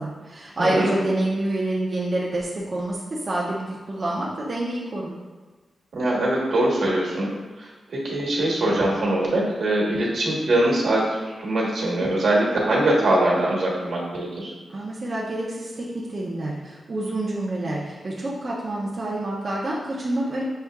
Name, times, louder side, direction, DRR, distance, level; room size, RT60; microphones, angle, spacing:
voice 1, 0.0-5.1 14.7-20.4, right 1 dB, 35° right, -5 dB, 0.5 m, -27 dB
voice 2, 0.6-1.0 5.9-7.3 7.6-14.5, right 1 dB, 70° right, -4 dB, 1.2 m, -22 dB
6.6 x 2.7 x 2.3 m, 1.3 s
wide cardioid pair, 175°, 0 cm